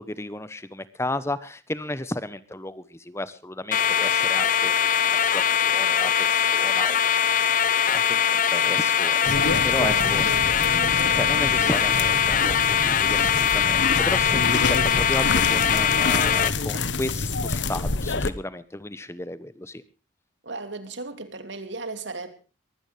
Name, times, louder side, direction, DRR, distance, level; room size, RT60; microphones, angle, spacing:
voice 1, 0.0-4.8 5.1-7.0 7.3-10.2 10.9-19.8, left 1 dB, 15° left, 0.9 m, -33 dB
sound 1, 3.7-16.5, left 8 dB, 45° left, 0.8 m, -22 dB
voice 2, 9.2-11.9 14.2-14.5 20.4-22.3, right 2 dB, 75° right, 2.7 m, -36 dB
sound 2, 9.3-18.3, left 3 dB, 75° left, 1.3 m, -28 dB
22.5 x 16.0 x 3.3 m
head